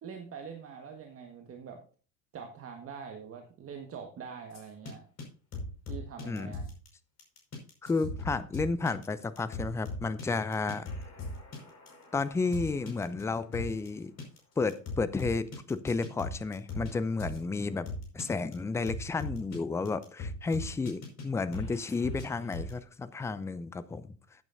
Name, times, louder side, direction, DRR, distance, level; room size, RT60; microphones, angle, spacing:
voice 1, 0.0-1.8 2.3-5.0 5.9-6.6, right 6 dB, 25° right, 4 dB, 1.6 m, -44 dB
sound 1, 4.5-4.9 5.2-5.3 5.5-6.9 7.2-13.9 14.2-14.4 14.7-16.9 17.2-17.4 17.9-18.2 18.5-18.6 18.9-19.6 19.9-21.2 21.5-22.8, left 2 dB, 30° left, 5.4 m, -39 dB
voice 2, 7.8-10.9 12.1-14.1 14.6-17.9 18.1-24.2, left 4 dB, 5° left, 15 dB, 0.5 m, -32 dB
15.0 x 8.9 x 2.7 m, 0.38 s
figure-of-eight pair, 80°, 50 cm